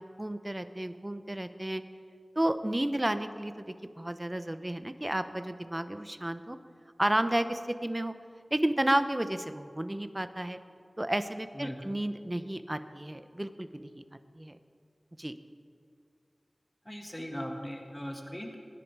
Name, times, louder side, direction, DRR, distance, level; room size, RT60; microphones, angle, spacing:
voice 1, 0.0-1.8 2.4-6.6 7.0-8.1 8.5-10.6 11.0-14.0 14.4-14.6 15.2-15.4, right 1 dB, 25° right, 10 dB, 0.8 m, -32 dB
voice 2, 16.9-18.6, equal, 20° left, 2 dB, 1.7 m, -39 dB
19.5 x 10.5 x 4.8 m, 2.4 s
wide cardioid pair, 50°, 0 cm